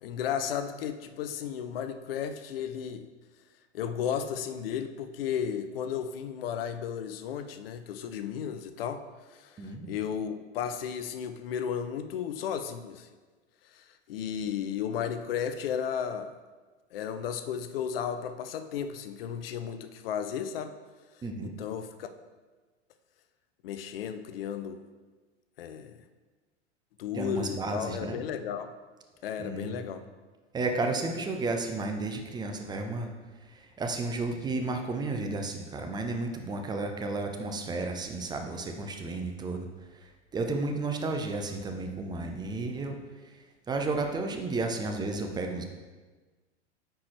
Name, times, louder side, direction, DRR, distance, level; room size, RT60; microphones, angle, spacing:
voice 1, 0.0-3.1 3.7-13.1 13.6-16.3 16.9-20.7 21.1-22.1 23.6-24.8 25.6-26.0 27.0-28.7 29.2-30.0, left 8 dB, 55° left, 10 dB, 0.6 m, -34 dB
voice 2, 9.6-10.0 21.2-21.5 27.1-28.2 29.4-29.8 30.5-33.1 33.4-45.6, right 3 dB, 10° right, 4 dB, 0.6 m, -33 dB
9.4 x 4.5 x 3.2 m, 1.3 s
figure-of-eight pair, 90°, 35 cm